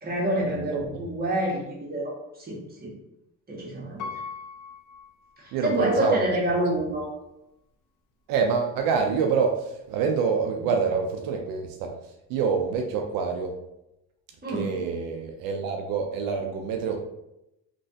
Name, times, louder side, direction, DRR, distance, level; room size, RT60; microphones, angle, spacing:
voice 1, 0.0-2.9 3.5-4.0 5.4-7.1 10.6-10.7 14.4-14.7, right 1 dB, 30° right, -4 dB, 1.5 m, -27 dB
Piano, 4.0-6.0 6.5-6.6, left 5 dB, 65° left, 0.7 m, -40 dB
voice 2, 5.5-6.3 8.3-11.9 12.3-13.5 14.5-17.1, right 5 dB, 90° right, 3 dB, 0.5 m, -26 dB
3.2 x 3.0 x 2.7 m, 0.86 s
cardioid pair, 85°, 33 cm